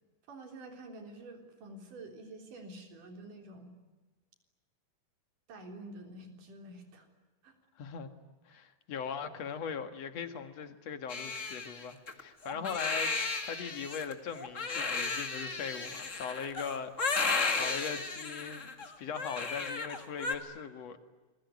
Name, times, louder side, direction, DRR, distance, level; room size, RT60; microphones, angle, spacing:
voice 1, 0.3-3.7 5.5-7.1 7.4-7.5 12.5-12.7 17.2-17.3, right 2 dB, 85° right, 4 dB, 5.2 m, -48 dB
voice 2, 7.8-8.1 8.5-13.1 13.4-21.0, left 6 dB, 55° left, 8 dB, 2.8 m, -40 dB
Crying sobbing, 11.1-20.3, left 4 dB, 25° left, 2.0 m, -34 dB
27.5 x 22.0 x 9.6 m, 1.2 s
omnidirectional pair, 3.6 m